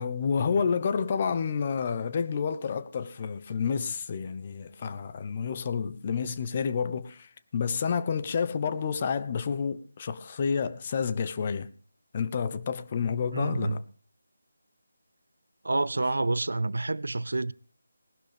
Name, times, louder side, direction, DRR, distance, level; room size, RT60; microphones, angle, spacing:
voice 1, 0.0-11.7 12.1-13.8, left 6 dB, 30° left, 0.9 m, -29 dB
voice 2, 13.3-13.8 15.6-17.5, right 2 dB, 70° right, 0.6 m, -28 dB
19.0 x 11.5 x 3.4 m
figure-of-eight pair, 160°, 0 cm